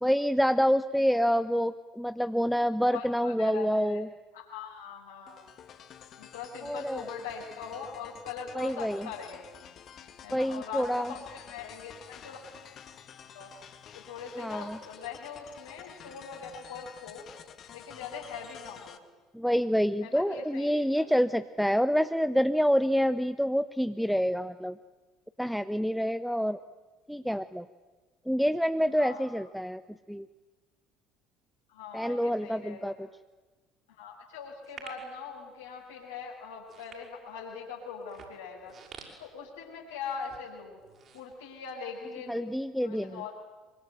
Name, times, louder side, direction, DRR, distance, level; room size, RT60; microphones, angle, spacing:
voice 1, 0.0-4.1 6.6-7.1 8.5-9.1 10.3-11.1 14.4-14.8 19.3-24.8 25.4-26.6 27.1-27.6 28.3-29.8 30.1-30.3 31.9-32.9 42.3-43.2, equal, ahead, 11 dB, 0.9 m, -27 dB
voice 2, 2.8-4.0 4.3-5.5 6.2-9.4 10.2-12.4 13.1-13.5 13.9-17.3 17.7-19.0 20.0-21.1 28.9-29.3 31.7-32.9 34.0-38.8 39.2-40.8 41.1-43.3, left 6 dB, 75° left, -4 dB, 5.5 m, -42 dB
sound 1, 5.3-19.0, left 8 dB, 45° left, 2.1 m, -50 dB
sound 2, 34.6-35.1 35.8-36.0 36.5-37.5 38.0-39.9 40.2-40.4 40.8-42.0 42.3-42.4, right 6 dB, 40° right, 6.8 m, -49 dB
25.5 x 24.5 x 9.2 m, 1.3 s
figure-of-eight pair, 60°, 0 cm